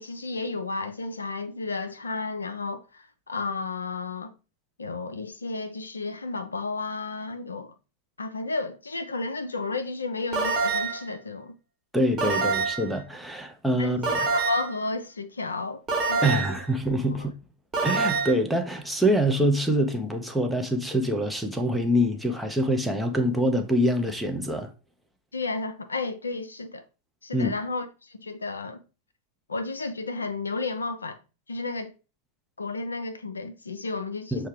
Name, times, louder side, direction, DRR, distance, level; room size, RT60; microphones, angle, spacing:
voice 1, 0.0-4.3 4.8-7.7 8.2-11.6 12.3-12.4 13.8-14.0 14.3-15.8 16.1-16.5 17.1-17.3 25.3-26.8 27.2-28.8 29.5-31.2 31.5-31.9 32.6-34.5, left 3 dB, 75° left, 0.4 m, -32 dB
sound 1, 10.3-11.1 12.2-12.9 14.0-14.8 15.9-16.6 17.7-18.3, right 4 dB, 25° right, 1.1 m, -26 dB
voice 2, 11.9-14.2 16.2-17.3 17.8-24.7 27.3-27.5 34.3-34.5, equal, ahead, 0.6 m, -25 dB
6.4 x 2.2 x 3.1 m
figure-of-eight pair, 90°, 0 cm